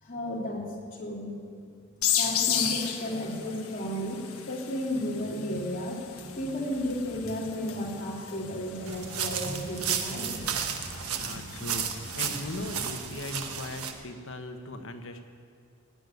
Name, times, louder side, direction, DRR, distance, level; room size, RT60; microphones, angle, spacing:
voice 1, 0.0-0.6 0.9-1.3 2.2-10.8, equal, 40° left, -3 dB, 3.3 m, -33 dB
sound 1, 2.0-13.4, left 9 dB, 75° left, 1.3 m, -35 dB
sound 2, 8.9-13.9, right 7 dB, 90° right, 1.3 m, -33 dB
voice 2, 11.0-15.2, left 2 dB, 60° left, 6 dB, 1.3 m, -39 dB
17.5 x 8.1 x 9.7 m, 2.3 s
head